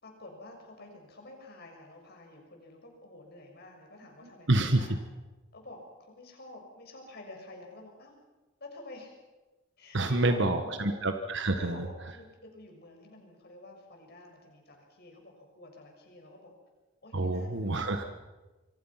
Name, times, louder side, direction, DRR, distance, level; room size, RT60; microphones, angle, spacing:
voice 1, 0.0-4.9 5.5-8.1 8.6-9.1 9.8-11.0 11.4-16.5 17.0-18.0, left 2 dB, 50° left, 2 dB, 6.3 m, -49 dB
voice 2, 4.5-4.9 9.9-11.9 17.1-18.0, right 2 dB, 60° right, 7 dB, 1.5 m, -27 dB
27.0 x 23.5 x 5.8 m, 1.2 s
head